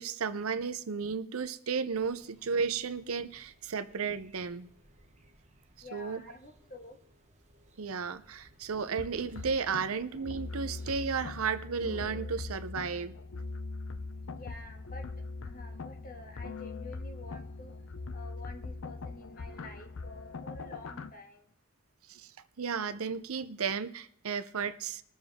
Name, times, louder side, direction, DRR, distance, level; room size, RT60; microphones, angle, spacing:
voice 1, 0.0-4.7 5.9-6.2 7.8-13.2 22.1-22.3 22.6-25.0, right 5 dB, 85° right, 0.7 m, -33 dB
sound 1, 1.9-11.3, right 1 dB, 35° right, 1.1 m, -61 dB
voice 2, 5.8-7.0 14.3-15.1 15.4-17.7 18.1-21.5, left 2 dB, 40° left, 1.7 m, -49 dB
sound 2, 9.0-21.1, left 3 dB, 70° left, 0.5 m, -41 dB
21.5 x 7.2 x 3.6 m
head